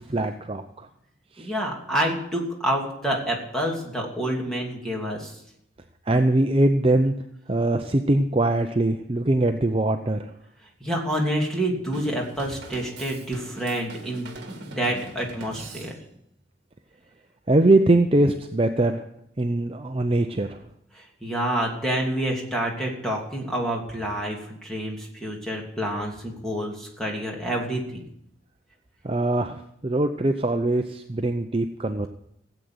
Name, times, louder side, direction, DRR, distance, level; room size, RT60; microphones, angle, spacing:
voice 1, 0.1-0.6 1.4-1.5 6.1-7.1 7.5-10.2 17.5-19.0 19.4-20.6 29.0-32.1, right 2 dB, 25° right, 6 dB, 0.6 m, -22 dB
voice 2, 1.4-5.3 10.8-15.9 20.9-28.0, right 1 dB, 5° left, -1 dB, 2.8 m, -28 dB
Drum kit / Drum, 11.9-16.3, right 3 dB, 55° right, 1.9 m, -42 dB
16.5 x 8.1 x 7.9 m, 0.76 s
head